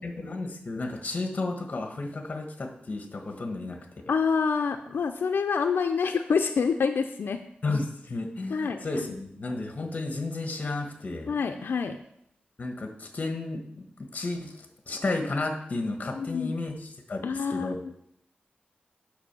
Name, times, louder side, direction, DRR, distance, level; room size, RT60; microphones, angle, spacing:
voice 1, 0.0-3.8 7.6-11.3 12.6-14.5 14.9-16.7 17.1-17.8, left 2 dB, 45° left, 4 dB, 1.4 m, -32 dB
voice 2, 4.1-7.4 8.5-9.2 11.3-12.0 16.1-16.5 17.2-17.9, left 5 dB, 90° left, 6 dB, 0.5 m, -27 dB
8.7 x 5.3 x 6.8 m, 0.73 s
wide cardioid pair, 135°, 4 cm